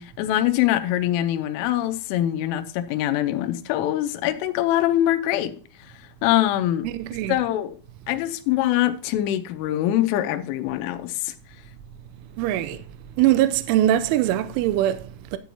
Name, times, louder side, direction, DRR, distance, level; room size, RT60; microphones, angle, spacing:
voice 1, 0.0-5.5 6.2-6.9 7.3-7.7 8.1-11.3, left 13 dB, 85° left, 3.2 m, -23 dB
voice 2, 6.8-7.4 12.3-12.9 13.2-15.4, right 13 dB, 85° right, 2.9 m, -22 dB
11.5 x 9.2 x 2.8 m
omnidirectional pair, 5.9 m